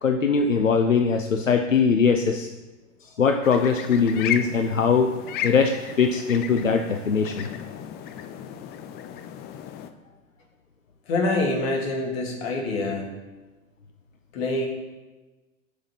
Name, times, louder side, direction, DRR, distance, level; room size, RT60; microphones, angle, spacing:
voice 1, 0.0-2.5 3.2-5.1 5.4-7.5, left 5 dB, 80° left, 6 dB, 0.8 m, -21 dB
sound 1, 3.4-9.9, left 9 dB, 25° left, 0.7 m, -35 dB
voice 2, 11.1-13.1 14.3-14.7, left 2 dB, 50° left, 0 dB, 2.6 m, -25 dB
8.0 x 6.4 x 7.6 m, 1.2 s
figure-of-eight pair, 95°, 39 cm